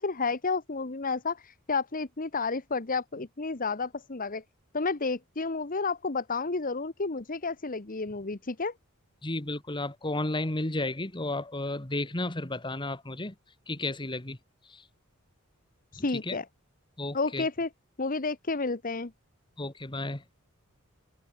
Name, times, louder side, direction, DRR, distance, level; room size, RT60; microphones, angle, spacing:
voice 1, 0.0-4.4 4.7-8.7 15.9-16.5 17.1-17.7 18.0-19.1, left 4 dB, 40° left, 1.1 m, -31 dB
voice 2, 9.2-13.3 13.7-14.4 16.2-16.4 17.0-17.4 19.6-20.2, left 2 dB, 20° left, 1.7 m, -32 dB
head